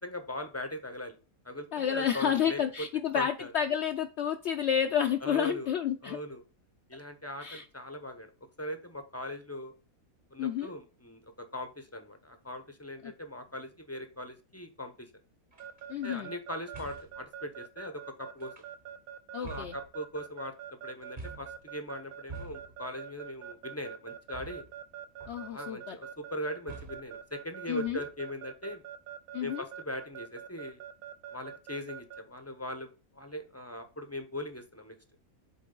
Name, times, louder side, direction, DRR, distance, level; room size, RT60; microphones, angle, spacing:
voice 1, 0.0-1.2 1.4-2.6 3.1-3.5 5.2-5.7 6.0-6.4 6.9-8.3 8.6-9.7 10.3-15.1 16.0-18.5 19.4-24.6 25.4-28.8 29.4-30.8 31.3-34.9, left 1 dB, 15° left, 0.5 m, -40 dB
voice 2, 1.7-6.2 7.4-7.6 10.4-10.7 13.0-13.1 15.9-16.3 19.3-19.7 25.3-26.0 27.7-28.0 29.3-29.6, left 8 dB, 65° left, 0.7 m, -30 dB
sound 1, 15.5-15.8 16.7-17.3 18.4-18.9 19.4-20.4 21.2-21.7 22.3-22.9 24.3-24.9 25.2-25.7 26.7-27.2 27.9-28.4, right 3 dB, 35° right, 1.1 m, -47 dB
Keyboard (musical) / Alarm, 15.6-32.2, right 10 dB, 80° right, 1.2 m, -44 dB
8.2 x 3.5 x 3.8 m
omnidirectional pair, 1.5 m